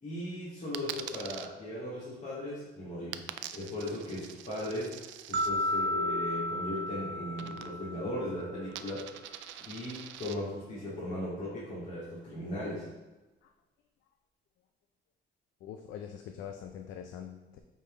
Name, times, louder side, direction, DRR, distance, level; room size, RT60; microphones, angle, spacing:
voice 1, 0.0-3.2 3.5-9.1 9.7-12.9, left 1 dB, 45° left, -10 dB, 2.3 m, -37 dB
Coin (dropping), 0.7-1.5 3.1-5.5 7.4-8.0 8.3-10.4, right 12 dB, 85° right, 0.4 m, -44 dB
sound 1, 5.3-8.5, left 1 dB, 65° right, 0.9 m, -33 dB
voice 2, 15.6-17.6, left 8 dB, 85° left, 5 dB, 0.5 m, -43 dB
8.2 x 4.4 x 3.2 m, 1.1 s
cardioid pair, 115°, 19 cm